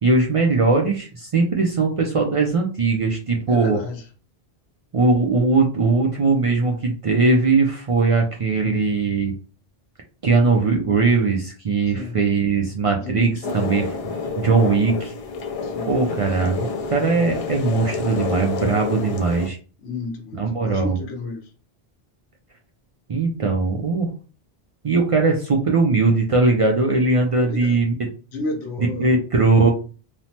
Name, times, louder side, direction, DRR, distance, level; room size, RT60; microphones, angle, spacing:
voice 1, 0.0-3.8 4.9-9.3 10.2-13.9 14.4-15.1 15.9-19.6 20.3-21.0 23.1-24.1 24.8-27.9 28.8-29.7, right 3 dB, 60° right, 0.3 m, -20 dB
voice 2, 3.5-4.1 11.9-12.2 12.9-13.4 15.6-15.9 19.8-21.5 27.4-27.8 28.3-29.1, left 3 dB, 90° left, 0.9 m, -32 dB
sound 1, 13.4-19.5, left 4 dB, 55° left, 0.4 m, -28 dB
3.1 x 2.0 x 2.7 m
omnidirectional pair, 1.1 m